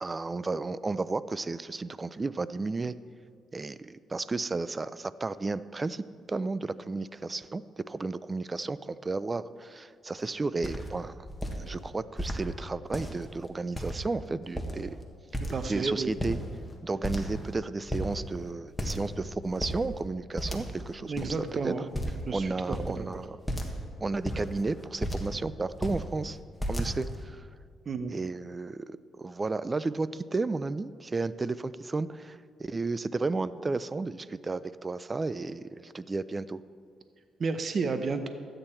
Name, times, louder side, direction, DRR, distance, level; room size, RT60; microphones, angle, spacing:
voice 1, 0.0-2.9 3.5-11.1 11.6-15.0 15.7-16.4 16.8-21.7 22.3-23.4 24.0-26.4 26.7-27.5 28.1-36.6, right 3 dB, 25° right, 16 dB, 0.3 m, -33 dB
sound 1, 10.2-10.3 10.6-10.9 11.3-11.6 12.2-12.4 12.8-13.3 13.8-14.2 14.4-14.9 15.3-15.8 16.1-16.7 17.0-17.6 17.9-18.1 18.8-19.1 19.4-19.8 20.4-20.9 21.1-21.3 21.9-22.3 22.7-22.9 23.5-23.8 24.1-25.4 25.7-26.0 26.6-27.2, equal, 10° left, 1.4 m, -33 dB
voice 2, 15.5-16.1 21.0-21.8 22.3-23.0 27.9-28.2 37.4-38.3, right 4 dB, 45° right, 9 dB, 0.7 m, -32 dB
12.5 x 8.8 x 4.4 m, 2.1 s
cardioid pair, 90°, 0 cm